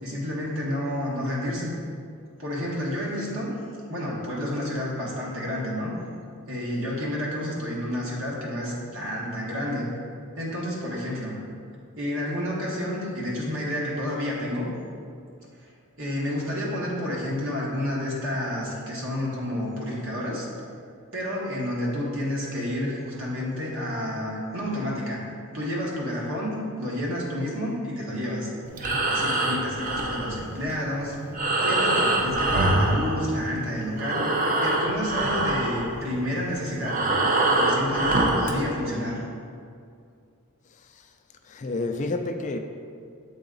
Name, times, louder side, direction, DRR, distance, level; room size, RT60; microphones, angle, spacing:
voice 1, 0.0-1.7 2.4-3.6 3.9-5.9 6.5-9.8 10.4-11.4 12.0-14.6 16.0-20.5 21.1-25.2 25.5-28.5 29.0-31.3 31.6-34.2 34.6-37.0 37.6-39.2, left 1 dB, 60° right, -4 dB, 1.3 m, -30 dB
Breathing, 28.7-33.7 33.9-38.6, right 2 dB, 35° right, 0.6 m, -24 dB
voice 2, 41.5-42.6, left 2 dB, 35° left, 6 dB, 0.3 m, -29 dB
7.8 x 4.0 x 3.8 m, 2.3 s
head